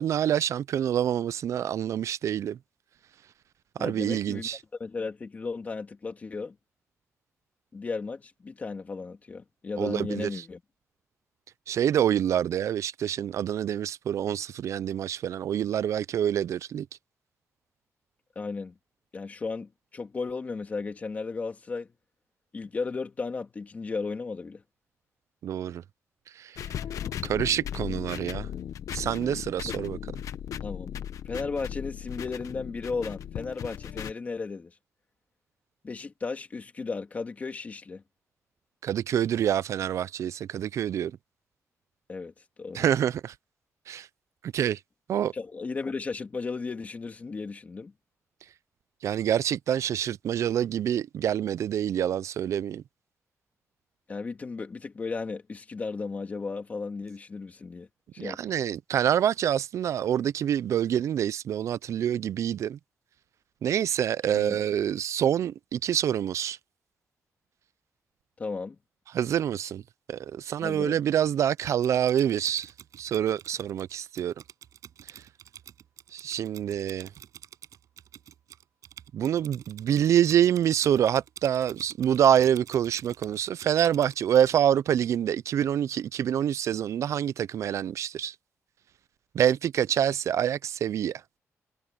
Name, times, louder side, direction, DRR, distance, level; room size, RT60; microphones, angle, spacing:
voice 1, 0.0-2.6 3.8-4.6 9.8-10.4 11.7-16.9 25.4-25.8 26.4-26.6 27.2-28.5 28.9-30.0 38.8-41.1 42.7-43.3 43.9-44.1 44.4-44.8 45.1-45.3 49.0-52.8 58.2-62.8 63.6-66.6 69.1-69.8 70.1-72.7 73.0-74.3 76.1-77.1 79.1-88.3 89.3-91.2, right 10 dB, 65° right, 0.4 m, -26 dB
voice 2, 3.8-4.5 4.8-6.5 7.7-10.6 18.3-18.7 19.1-21.9 22.5-24.6 29.6-29.7 30.6-30.9 31.3-34.7 35.8-38.0 42.1-42.3 42.6-42.9 45.3-47.9 54.1-57.9 58.1-58.4 64.3-64.6 68.4-68.8 70.6-71.0, left 4 dB, 30° left, 2.8 m, -35 dB
sound 1, 26.6-34.1, left 9 dB, 90° left, 1.1 m, -37 dB
Typing, 71.6-84.6, right 10 dB, 90° right, 6.5 m, -49 dB
wide cardioid pair, 175°, 5 cm